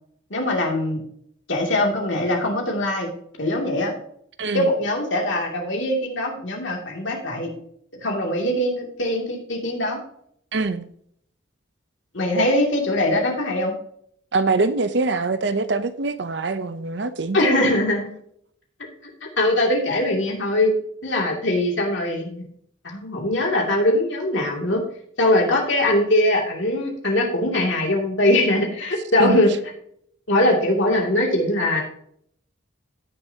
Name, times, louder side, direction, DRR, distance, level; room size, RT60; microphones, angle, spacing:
voice 1, 0.3-1.0 1.5-3.1 3.4-3.9 4.5-7.5 8.0-10.0 12.1-13.7 17.3-18.1 19.2-20.7 21.0-22.4 22.8-24.8 25.2-29.5 30.3-31.8, left 1 dB, 65° left, 2.5 m, -21 dB
voice 2, 4.4-4.7 10.5-10.9 14.3-17.7 29.2-29.4, right 3 dB, 55° right, 0.6 m, -24 dB
16.0 x 6.7 x 2.8 m
head